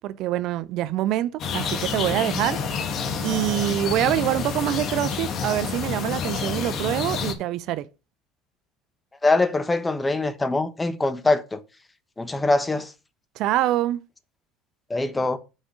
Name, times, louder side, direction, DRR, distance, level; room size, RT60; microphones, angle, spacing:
voice 1, 0.0-2.6 3.2-7.9 13.4-14.0, right 13 dB, 65° right, 0.5 m, -25 dB
sound 1, 1.4-7.3, left 6 dB, 50° left, 1.4 m, -28 dB
voice 2, 9.2-11.6 12.2-12.9 14.9-15.4, left 2 dB, 15° left, 1.1 m, -23 dB
6.3 x 5.0 x 6.2 m
hypercardioid pair, 80°, 0 cm